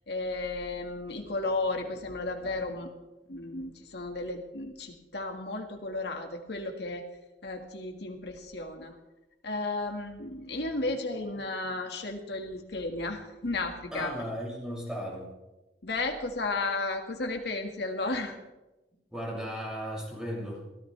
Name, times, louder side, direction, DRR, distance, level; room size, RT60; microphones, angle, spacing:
voice 1, 0.1-2.9 3.3-7.0 7.4-9.0 9.4-14.1 15.8-18.3, left 2 dB, 70° left, 3 dB, 1.8 m, -33 dB
voice 2, 13.9-15.3 19.1-20.6, equal, 5° right, -4 dB, 6.5 m, -36 dB
23.5 x 16.5 x 3.4 m, 1.0 s
head